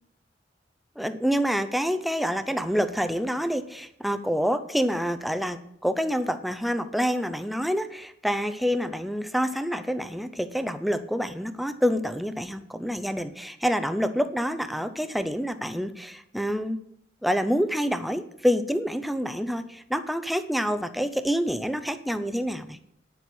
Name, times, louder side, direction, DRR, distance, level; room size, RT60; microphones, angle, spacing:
voice 1, 1.0-16.8 17.2-22.8, equal, ahead, 10 dB, 0.6 m, -27 dB
9.8 x 7.2 x 6.2 m, 0.75 s
head